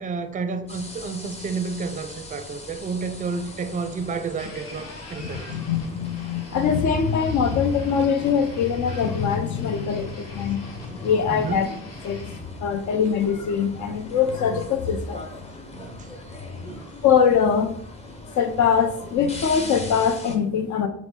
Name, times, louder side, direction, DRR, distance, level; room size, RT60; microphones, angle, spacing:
voice 1, 0.0-5.6 11.3-11.7 15.7-16.1 16.6-16.9, right 4 dB, 25° right, 0.4 m, -31 dB
sound 1, 0.7-20.4, left 1 dB, 20° left, 0.7 m, -41 dB
sound 2, 4.4-12.4, left 3 dB, 55° left, 1.2 m, -41 dB
voice 2, 5.2-11.7 12.0-12.2 12.6-15.3 16.8-17.8 18.4-20.9, left 7 dB, 70° left, 0.6 m, -23 dB
5.9 x 2.1 x 3.6 m
cardioid pair, 90°, 30 cm